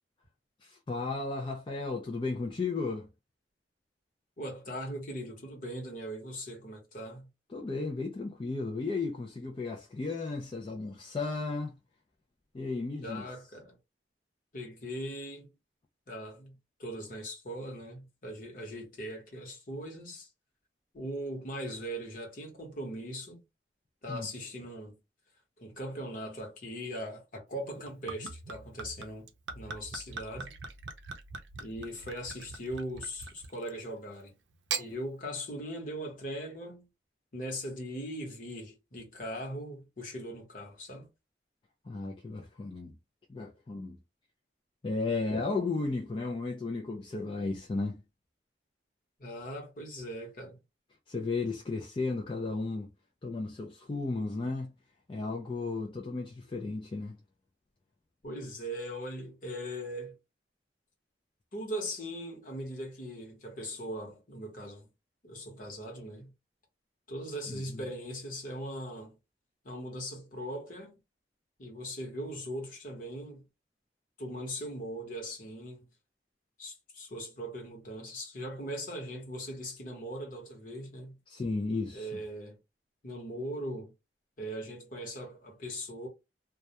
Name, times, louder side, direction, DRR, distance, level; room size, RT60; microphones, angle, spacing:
voice 1, 0.6-3.1 7.5-11.8 12.5-13.3 24.1-24.3 41.8-43.0 43.3-44.0 44.8-48.0 51.1-52.9 53.2-54.7 55.1-57.2 67.5-67.9 81.3-82.2, left 3 dB, 30° left, 0.4 m, -34 dB
voice 2, 4.4-7.3 13.0-13.8 14.5-15.5 16.1-16.5 16.8-20.3 20.9-23.4 24.0-25.0 25.6-29.3 29.5-30.5 31.6-34.3 34.8-36.8 37.3-41.1 49.2-50.6 58.2-60.2 61.5-64.9 65.2-66.3 67.1-69.2 69.6-70.9 71.6-73.4 74.2-75.9 76.6-81.2 81.9-82.6 83.0-83.9 84.4-86.1, equal, 50° left, 1.0 m, -40 dB
Gurgling / Chink clink / Liquid, 27.7-33.8 34.5-34.9, right 5 dB, 90° right, 0.5 m, -41 dB
2.2 x 2.1 x 2.8 m
head